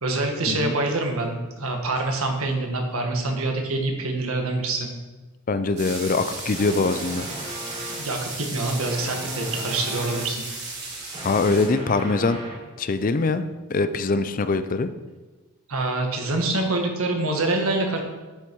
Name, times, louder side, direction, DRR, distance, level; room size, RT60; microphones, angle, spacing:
voice 1, 0.0-4.9 8.0-10.4 15.7-18.0, right 2 dB, 75° right, 3 dB, 1.5 m, -25 dB
voice 2, 5.5-7.3 11.2-12.4 12.8-14.9, left 3 dB, 40° left, 11 dB, 0.4 m, -23 dB
sound 1, 5.8-11.7, right 3 dB, 50° right, 2.8 m, -35 dB
sound 2, 6.5-8.2 8.8-10.3 10.9-12.7, equal, 30° right, 2.0 m, -37 dB
10.0 x 6.3 x 4.6 m, 1.2 s
head